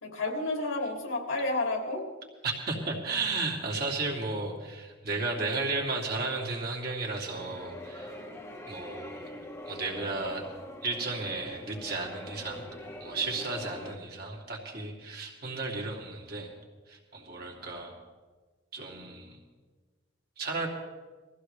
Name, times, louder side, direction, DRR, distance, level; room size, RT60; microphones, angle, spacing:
voice 1, 0.0-2.0, left 2 dB, 90° left, 0 dB, 3.0 m, -30 dB
voice 2, 2.4-8.2 8.7-9.2 9.6-10.5 10.8-12.7 13.0-16.5 16.9-17.9 18.7-19.4 20.4-20.7, right 3 dB, 50° right, -2 dB, 2.6 m, -34 dB
sound 1, 7.3-14.0, left 1 dB, 15° left, 1.2 m, -43 dB
22.0 x 15.0 x 3.4 m, 1.4 s
head